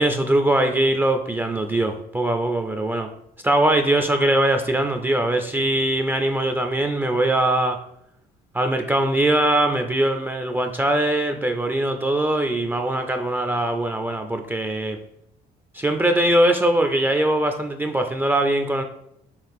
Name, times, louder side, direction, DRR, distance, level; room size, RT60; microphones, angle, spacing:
voice 1, 0.0-3.1 3.4-7.8 8.5-15.0 15.7-18.8, right 1 dB, 10° right, 5 dB, 0.4 m, -21 dB
5.7 x 2.4 x 3.5 m, 0.75 s
cardioid pair, 110°, 17 cm